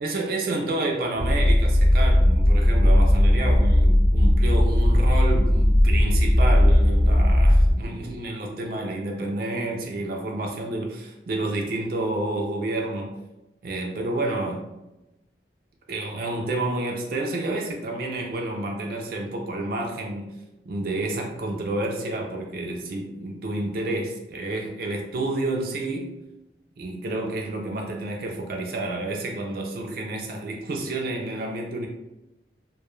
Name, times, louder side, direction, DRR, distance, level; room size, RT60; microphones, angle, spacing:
voice 1, 0.0-13.1 13.6-14.7 15.9-20.3 20.7-26.1 26.8-31.9, right 2 dB, 55° right, 1 dB, 0.3 m, -29 dB
sound 1, 1.2-7.7, left 1 dB, 40° left, 0.4 m, -17 dB
2.2 x 2.1 x 3.0 m, 0.96 s
head